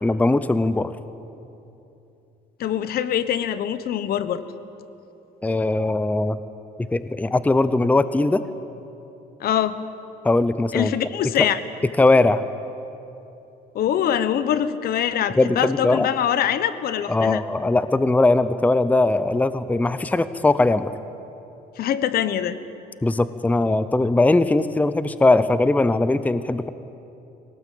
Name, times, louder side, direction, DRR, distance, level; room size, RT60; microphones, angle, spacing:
voice 1, 0.0-1.0 5.4-6.4 6.9-8.4 10.2-10.9 11.4-11.5 12.0-12.4 15.4-16.1 17.1-20.9 23.0-26.7, left 2 dB, 10° left, 13 dB, 0.7 m, -20 dB
voice 2, 2.6-4.4 9.4-9.8 10.7-11.6 13.7-17.4 21.8-22.6, left 10 dB, 65° left, 13 dB, 1.1 m, -23 dB
22.5 x 18.0 x 8.6 m, 2.8 s
cardioid pair, 110°, 17 cm